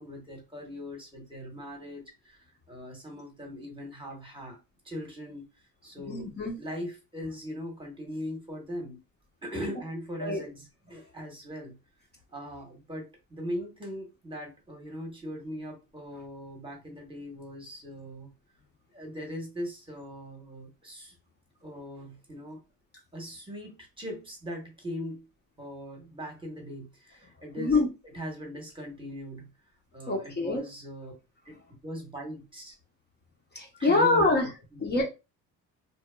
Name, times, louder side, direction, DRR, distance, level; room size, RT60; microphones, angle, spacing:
voice 1, 0.0-4.6 4.8-5.5 5.8-6.3 6.6-9.0 9.4-11.8 12.3-13.0 13.3-18.3 18.9-21.1 21.6-22.6 23.1-25.2 25.6-29.5 29.9-31.1 31.4-31.6 31.8-32.7 33.8-34.8, equal, 15° right, 0 dB, 1.0 m, -40 dB
voice 2, 6.1-6.6 10.2-10.4 27.6-27.9 30.1-30.6 33.5-34.4 34.8-35.0, left 2 dB, 30° left, -1 dB, 0.7 m, -25 dB
2.8 x 2.3 x 2.2 m, 0.27 s
cardioid pair, 110°, 35 cm